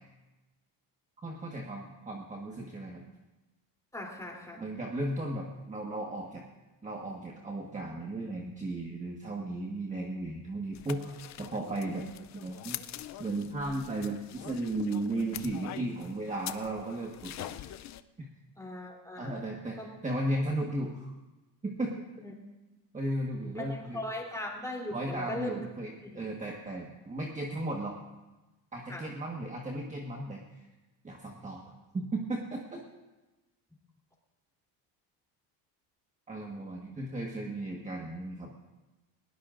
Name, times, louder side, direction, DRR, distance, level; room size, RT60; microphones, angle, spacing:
voice 1, 1.2-3.0 4.5-6.4 6.8-12.1 12.3-12.8 13.2-17.6 18.2-18.3 19.2-21.1 21.6-22.0 22.9-24.0 24.9-28.0 28.7-30.6 31.0-32.8 36.3-38.5, right 1 dB, 15° right, 0 dB, 1.4 m, -35 dB
voice 2, 3.9-4.6 18.6-19.5 19.8-19.9 22.2-22.3 23.5-25.7 26.0-26.3 28.9-29.0, left 1 dB, 5° left, -1 dB, 3.2 m, -39 dB
sound 1, 10.7-18.0, left 12 dB, 40° left, 0.5 m, -44 dB
20.0 x 17.5 x 2.6 m, 1.1 s
cardioid pair, 120°, 44 cm